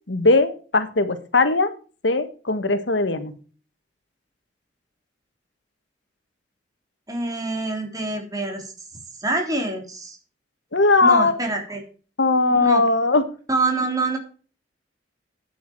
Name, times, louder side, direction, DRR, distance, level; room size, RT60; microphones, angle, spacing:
voice 1, 0.1-1.7 2.0-3.3 10.7-11.3 12.2-13.2, left 3 dB, 80° left, 10 dB, 1.5 m, -19 dB
voice 2, 7.1-8.7 9.2-10.2 11.0-11.8 12.5-12.9 13.5-14.2, right 2 dB, 20° right, 3 dB, 3.5 m, -25 dB
12.0 x 9.4 x 4.6 m, 0.38 s
head